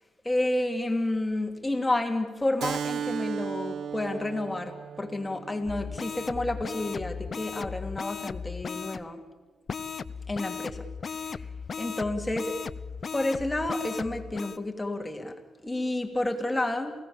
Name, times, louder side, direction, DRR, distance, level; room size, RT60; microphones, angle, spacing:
voice 1, 0.2-9.2 10.3-11.5 11.8-12.6 13.1-16.9, left 2 dB, 15° left, 4 dB, 3.0 m, -30 dB
Keyboard (musical), 2.6-7.7, right 7 dB, 75° right, 0.7 m, -37 dB
sound 1, 5.6-9.0 9.7-14.6, left 6 dB, 45° left, 0.8 m, -37 dB
28.0 x 17.5 x 7.3 m, 1.3 s
cardioid pair, 75°, 0 cm